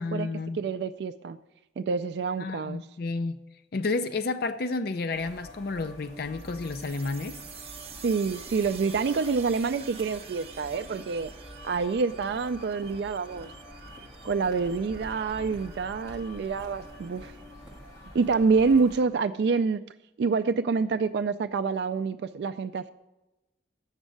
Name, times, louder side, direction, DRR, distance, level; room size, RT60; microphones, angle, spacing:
voice 1, 0.0-0.6 2.4-3.4 3.7-7.4, left 3 dB, 55° left, 0.5 m, -31 dB
voice 2, 0.5-1.4 1.8-2.8 8.0-11.3 11.6-13.5 14.2-17.3 18.1-19.8 20.2-22.9, right 4 dB, 60° right, 0.3 m, -27 dB
sound 1, 5.1-19.0, left 1 dB, 20° left, 1.9 m, -47 dB
sound 2, 6.4-17.8, right 7 dB, 35° right, 1.0 m, -48 dB
8.1 x 6.3 x 7.7 m
head